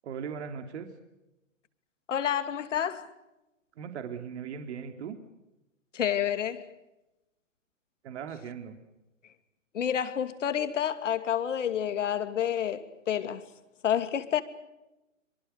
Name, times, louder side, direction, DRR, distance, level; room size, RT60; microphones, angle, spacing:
voice 1, 0.0-0.9 3.8-5.2 8.0-8.8, right 7 dB, 55° right, 3.1 m, -38 dB
voice 2, 2.1-3.1 5.9-6.7 9.7-13.4 13.8-14.4, left 9 dB, 65° left, 2.8 m, -29 dB
26.5 x 24.0 x 6.6 m
hypercardioid pair, 130°, 39 cm